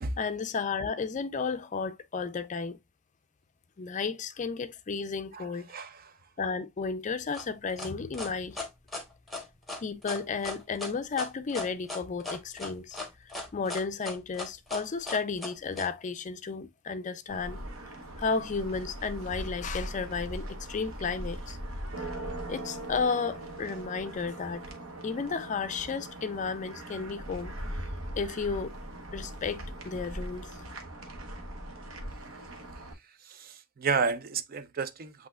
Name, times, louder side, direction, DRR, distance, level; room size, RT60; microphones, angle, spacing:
voice 1, 0.2-2.8 3.8-5.7 6.4-8.6 9.8-17.6 18.2-21.6 22.5-24.7 25.0-27.5 28.2-28.7 29.1-30.5, left 5 dB, 35° left, 0.4 m, -33 dB
voice 2, 5.3-6.1 33.2-35.3, right 5 dB, 45° right, 0.4 m, -32 dB
sound 1, 7.3-15.9, left 2 dB, ahead, 1.0 m, -38 dB
sound 2, 17.3-32.9, right 1 dB, 65° right, 1.0 m, -40 dB
8.3 x 2.8 x 2.3 m
head